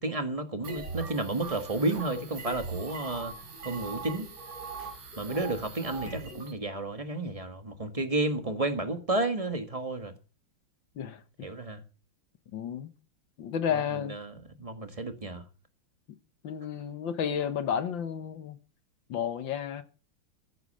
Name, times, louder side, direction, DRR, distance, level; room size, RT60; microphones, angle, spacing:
voice 1, 0.0-3.3 3.6-4.3 5.2-10.1 11.4-11.8 13.7-15.4, right 2 dB, 20° right, 1.4 m, -32 dB
sound 1, 0.6-6.5, right 3 dB, 55° right, 3.7 m, -40 dB
voice 2, 11.0-11.5 12.5-12.9 13.4-14.2 16.4-18.6 19.1-19.8, left 8 dB, 65° left, 1.8 m, -32 dB
14.5 x 8.3 x 6.6 m
omnidirectional pair, 2.3 m